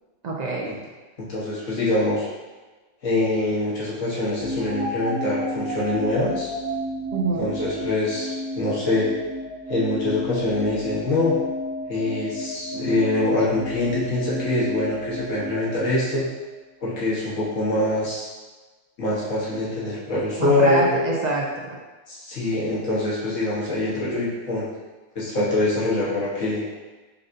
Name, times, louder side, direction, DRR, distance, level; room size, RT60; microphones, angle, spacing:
voice 1, 0.2-0.7 7.1-7.5 20.4-21.8, right 2 dB, 60° right, -2 dB, 0.4 m, -25 dB
voice 2, 1.3-2.3 3.0-6.5 7.4-9.1 9.7-11.3 11.9-16.3 16.8-18.3 19.0-20.9 22.1-24.7 25.1-26.6, left 2 dB, 80° left, -7 dB, 1.5 m, -24 dB
sound 1, 4.4-16.5, equal, 20° right, 0.9 m, -32 dB
5.5 x 2.6 x 2.6 m, 1.3 s
omnidirectional pair, 1.3 m